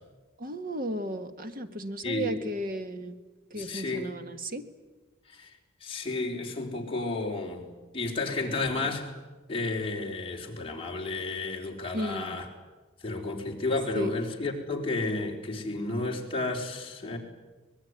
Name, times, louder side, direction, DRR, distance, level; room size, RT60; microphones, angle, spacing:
voice 1, 0.4-3.2 3.5-4.6 8.7-8.9 11.9-12.4 13.9-14.1, equal, 45° right, 7 dB, 1.7 m, -34 dB
voice 2, 2.0-2.5 3.5-4.1 5.3-5.5 5.8-9.1 9.5-12.5 13.0-17.2, left 2 dB, 30° left, -1 dB, 4.1 m, -32 dB
24.0 x 21.0 x 9.8 m, 1.3 s
head